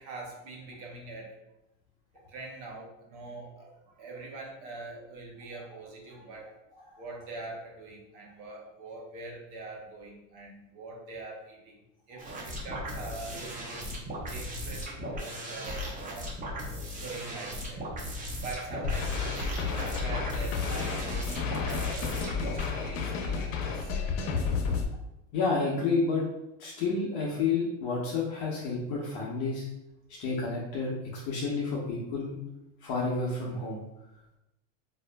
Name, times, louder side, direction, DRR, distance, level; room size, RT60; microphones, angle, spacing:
voice 1, 0.0-1.4 2.3-6.6 7.0-11.8 12.1-13.8 14.3-16.4 16.9-17.9 18.4-24.6 30.1-30.2, right 3 dB, 55° right, -1 dB, 1.0 m, -43 dB
sound 1, 12.2-22.7, equal, 20° right, 0.7 m, -37 dB
sound 2, 18.8-24.8, left 5 dB, 90° left, 0.7 m, -31 dB
voice 2, 25.3-26.2 26.6-29.6 30.2-32.4 32.8-33.8, left 4 dB, 50° left, -4 dB, 0.8 m, -30 dB
4.2 x 2.5 x 2.2 m, 0.89 s
supercardioid pair, 125°, 38 cm